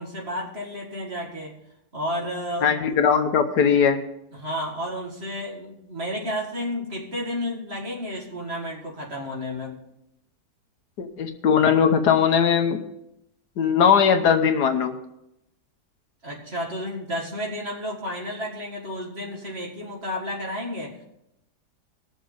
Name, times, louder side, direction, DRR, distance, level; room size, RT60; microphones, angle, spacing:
voice 1, 0.0-1.6 1.9-3.0 4.3-9.8 16.2-21.0, left 1 dB, 40° right, -1 dB, 2.3 m, -32 dB
voice 2, 2.6-4.0 11.0-12.8 13.6-14.9, left 7 dB, 75° left, 5 dB, 1.5 m, -19 dB
20.0 x 6.9 x 4.0 m, 0.84 s
omnidirectional pair, 1.8 m